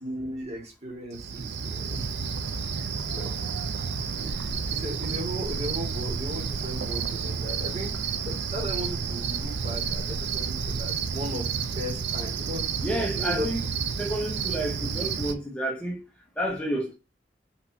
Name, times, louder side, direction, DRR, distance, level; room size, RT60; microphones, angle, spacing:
voice 1, 0.0-2.2 2.8-2.9 3.1-3.4 4.1-4.4 4.7-7.9 8.3-12.7 13.1-13.5, equal, 35° right, 1.8 m, -36 dB
Cricket, 1.1-15.3, right 5 dB, 85° right, 0.5 m, -30 dB
voice 2, 12.8-13.7 14.0-16.0 16.4-16.9, right 1 dB, 5° left, 0.7 m, -30 dB
5.8 x 3.1 x 2.7 m
head